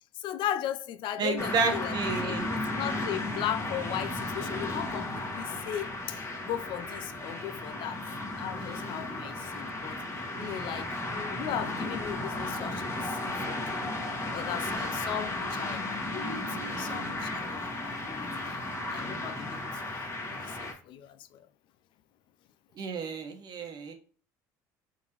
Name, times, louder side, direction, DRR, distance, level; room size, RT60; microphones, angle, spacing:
voice 1, 0.2-2.0 2.2-8.1 8.4-10.0 10.4-13.9 14.3-21.5, left 10 dB, 60° left, 0.4 m, -37 dB
voice 2, 1.2-2.5 10.3-10.7 22.8-23.9, right 4 dB, 50° right, 1.1 m, -31 dB
sound 1, 1.4-20.7, left 2 dB, 25° left, 1.5 m, -34 dB
4.0 x 3.8 x 2.9 m
supercardioid pair, 85°, 9 cm